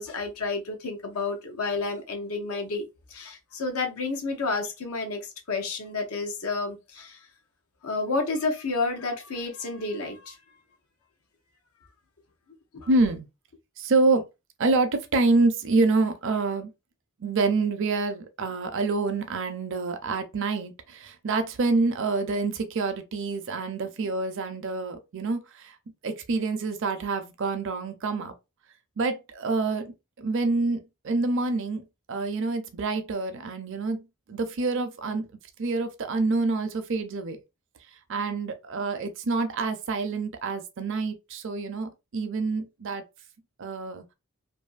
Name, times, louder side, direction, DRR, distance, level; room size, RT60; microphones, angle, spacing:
voice 1, 0.0-7.2 7.8-10.4 12.7-12.9, left 3 dB, 80° left, 0.7 m, -30 dB
voice 2, 12.9-13.3 13.8-14.2 14.6-16.7 17.2-25.8 26.0-28.3 29.0-29.9 30.2-35.3 35.6-37.4 38.1-43.0 43.6-44.0, right 3 dB, 60° right, 0.5 m, -27 dB
2.6 x 2.6 x 2.3 m
head